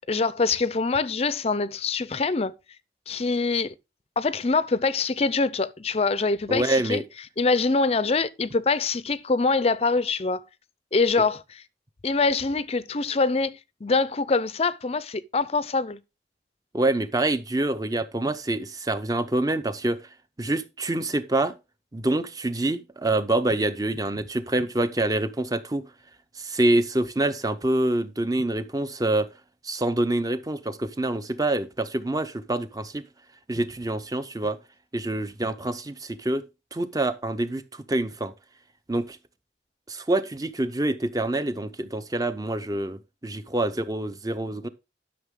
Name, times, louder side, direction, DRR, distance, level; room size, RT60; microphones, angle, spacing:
voice 1, 0.1-2.5 3.1-3.7 4.2-7.0 7.4-10.4 10.9-11.6 12.0-16.0, left 4 dB, 35° left, 0.5 m, -24 dB
voice 2, 6.5-7.0 16.7-20.0 20.4-21.5 21.9-25.9 26.4-29.3 29.6-33.0 33.5-34.6 34.9-36.4 36.7-38.3 38.9-39.2 39.9-44.7, right 2 dB, 20° right, 0.7 m, -26 dB
11.5 x 6.4 x 3.7 m
head